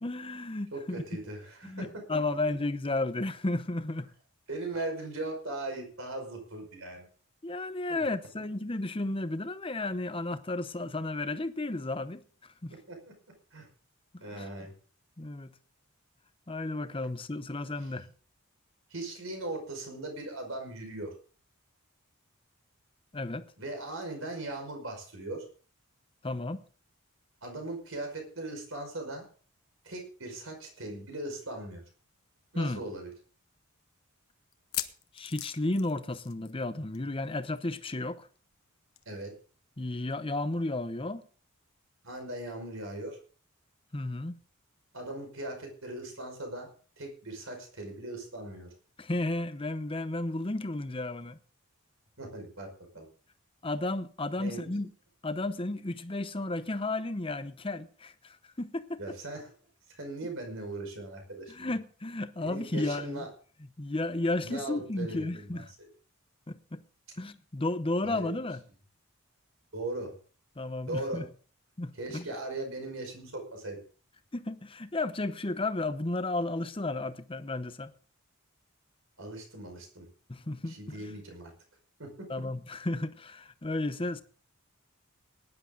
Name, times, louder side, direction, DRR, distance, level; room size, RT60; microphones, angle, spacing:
voice 1, 0.0-1.0 1.6-4.1 7.4-12.2 12.6-12.7 14.3-14.5 15.2-15.5 16.5-18.1 23.1-23.5 26.2-26.6 32.5-32.8 35.1-38.3 39.8-41.2 43.9-44.4 49.0-51.4 53.6-54.9 55.2-59.2 61.5-63.3 63.8-65.7 66.5-66.8 67.2-68.6 70.6-71.3 71.8-72.3 74.3-77.9 80.3-81.1 82.3-84.2, left 2 dB, 25° left, 0.8 m, -33 dB
voice 2, 0.7-2.0 4.5-7.1 7.9-8.1 12.7-13.1 13.5-13.7 14.2-14.7 18.9-21.1 23.6-25.5 27.4-29.3 29.8-31.8 32.5-33.1 39.1-39.3 42.0-43.2 44.9-46.7 47.0-48.7 52.2-52.7 52.9-53.1 54.4-54.7 59.0-59.5 59.9-61.7 62.4-63.3 64.4-65.9 68.0-68.3 69.7-70.1 70.9-71.3 72.0-73.8 79.2-80.1 80.7-81.5 82.0-82.3, right 2 dB, 60° right, 5.4 m, -39 dB
sound 1, 31.9-32.0 32.3-32.4 33.0-33.1 34.5-36.7 36.9-37.1 37.4-37.5 39.0-39.1, left 14 dB, 75° left, 1.0 m, -39 dB
18.5 x 11.0 x 3.9 m
head